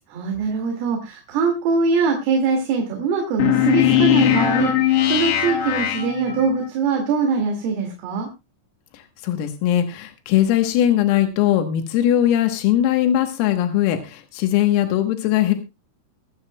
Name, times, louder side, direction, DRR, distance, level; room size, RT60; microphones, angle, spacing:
voice 1, 0.1-8.3, right 4 dB, 75° right, 2 dB, 4.8 m, -22 dB
sound 1, 3.4-6.7, left 11 dB, 70° left, 3.2 m, -19 dB
voice 2, 8.9-15.5, left 12 dB, 90° left, 6 dB, 3.9 m, -20 dB
24.5 x 9.6 x 2.2 m, 0.24 s
omnidirectional pair, 5.9 m